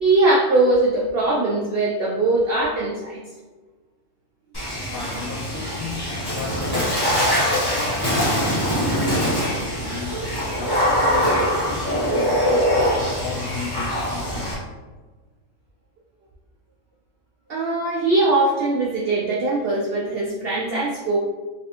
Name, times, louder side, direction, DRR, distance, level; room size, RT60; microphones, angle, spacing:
voice 1, 0.0-3.2 4.7-4.9 17.5-21.2, right 2 dB, 70° right, -4 dB, 0.5 m, -21 dB
Water / Splash splatter, 4.5-14.5, equal, 20° left, 0.8 m, -23 dB
voice 2, 4.9-14.5, left 4 dB, 70° left, -6 dB, 1.6 m, -35 dB
3.4 x 3.2 x 2.8 m, 1.3 s
omnidirectional pair, 1.6 m